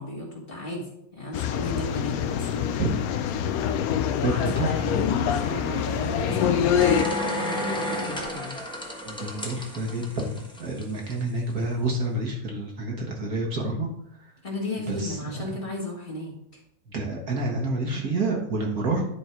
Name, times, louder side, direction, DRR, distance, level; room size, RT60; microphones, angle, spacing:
voice 1, 0.0-2.8 4.2-8.6 14.4-16.6, left 2 dB, 30° left, -3 dB, 1.8 m, -34 dB
sound 1, 1.3-7.0, left 9 dB, 70° left, 0.9 m, -25 dB
voice 2, 4.2-4.8 9.0-13.9 14.9-15.2 16.9-19.1, right 2 dB, 55° right, 0 dB, 1.8 m, -28 dB
sound 2, 6.7-11.1 11.5-11.6, left 1 dB, 5° left, 0.9 m, -31 dB
10.5 x 4.4 x 4.5 m, 0.77 s
omnidirectional pair, 1.9 m